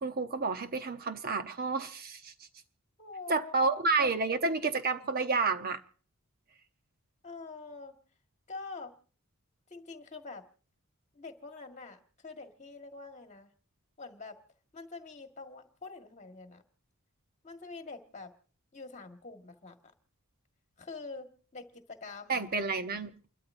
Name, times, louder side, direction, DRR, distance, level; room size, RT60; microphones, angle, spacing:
voice 1, 0.0-2.3 3.3-5.8 22.3-23.1, right 4 dB, 45° right, 0.9 m, -30 dB
voice 2, 3.0-3.8 7.2-7.9 8.5-8.9 9.7-10.4 11.1-13.5 14.0-14.4 14.7-16.6 17.4-18.3 18.7-19.8 20.8-22.4, left 3 dB, 35° left, 1.7 m, -45 dB
29.0 x 13.0 x 2.6 m
head